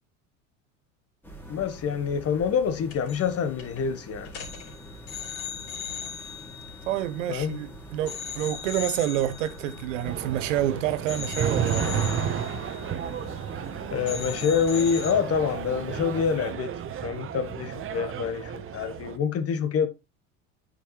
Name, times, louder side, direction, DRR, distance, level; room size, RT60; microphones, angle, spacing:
sound 1, 1.2-16.5, left 1 dB, 5° left, 2.5 m, -43 dB
voice 1, 1.5-4.3 7.3-7.6 13.9-19.9, left 7 dB, 35° left, 1.4 m, -27 dB
sound 2, 2.9-3.3 3.6-3.8 4.3-7.6 8.1-10.7 11.1-13.7 14.1-15.1, left 8 dB, 65° left, 3.4 m, -39 dB
voice 2, 6.8-11.9, right 12 dB, 70° right, 0.9 m, -28 dB
sound 3, 10.0-19.2, right 9 dB, 35° right, 1.0 m, -32 dB
9.1 x 5.4 x 3.2 m
hypercardioid pair, 80°, 39 cm